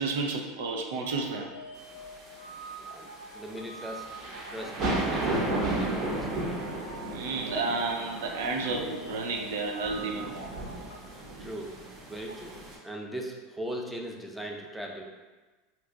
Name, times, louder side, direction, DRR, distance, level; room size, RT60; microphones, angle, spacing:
voice 1, 0.0-1.5 7.1-10.5, right 3 dB, 85° right, 2 dB, 0.4 m, -31 dB
sound 1, 1.0-11.0, right 1 dB, 85° left, 0.4 m, -46 dB
sound 2, 1.8-12.7, right 2 dB, 55° right, 0.9 m, -34 dB
voice 2, 3.3-4.1 4.5-6.7 11.4-11.7 12.1-12.6 12.8-15.0, right 1 dB, 5° right, 0 dB, 0.5 m, -39 dB
2.9 x 2.3 x 3.6 m, 1.3 s
supercardioid pair, 105°, 0 cm